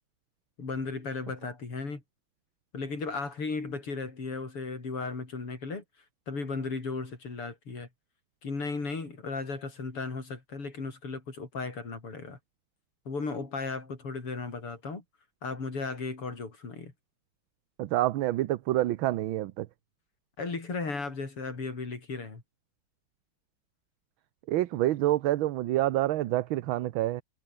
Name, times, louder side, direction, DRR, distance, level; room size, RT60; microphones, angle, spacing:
voice 1, 0.6-2.0 2.7-5.8 6.3-7.9 8.4-12.4 13.1-15.0 15.4-16.9 20.4-22.4, left 4 dB, 85° left, 5.9 m, -35 dB
voice 2, 17.8-19.7 24.5-27.2, right 15 dB, 70° right, 1.5 m, -27 dB
omnidirectional pair, 2.4 m